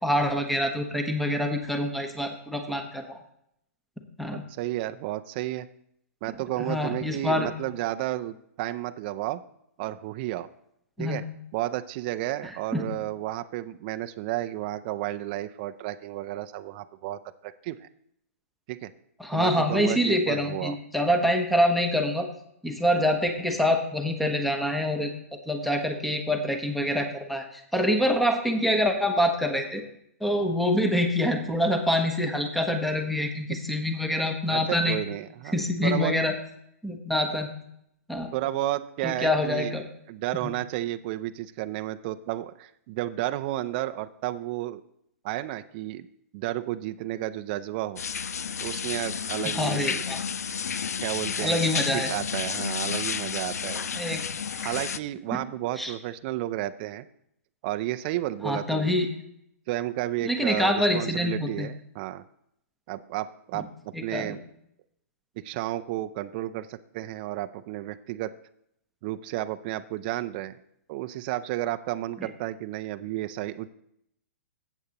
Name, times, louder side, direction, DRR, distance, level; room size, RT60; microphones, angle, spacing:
voice 1, 0.0-3.2 4.2-4.4 6.6-7.5 11.0-11.2 12.7-12.8 19.2-22.3 22.6-25.1 25.5-29.8 30.2-35.0 35.5-36.3 36.8-37.5 38.1-38.3 39.0-39.8 49.4-50.2 51.4-52.1 53.9-54.3 55.3-55.4 55.8-55.9 58.4-59.1 60.2-61.7 63.5-63.7 63.9-64.4, left 1 dB, ahead, 5 dB, 0.9 m, -26 dB
voice 2, 4.3-5.7 6.2-9.4 9.8-10.5 11.0-11.2 11.5-17.9 18.7-18.9 19.3-20.8 34.5-35.6 35.8-36.1 38.3-39.8 40.1-44.8 45.2-46.1 46.3-48.0 48.6-50.0 51.0-51.6 51.9-53.9 54.6-57.0 57.6-59.0 59.7-62.2 62.9-64.4 65.4-68.3 69.0-70.6 70.9-73.7, right 15 dB, 40° right, 9 dB, 0.4 m, -32 dB
sound 1, 48.0-55.0, left 6 dB, 90° left, 0.4 m, -31 dB
14.0 x 8.1 x 2.9 m, 0.73 s
hypercardioid pair, 140°, 8 cm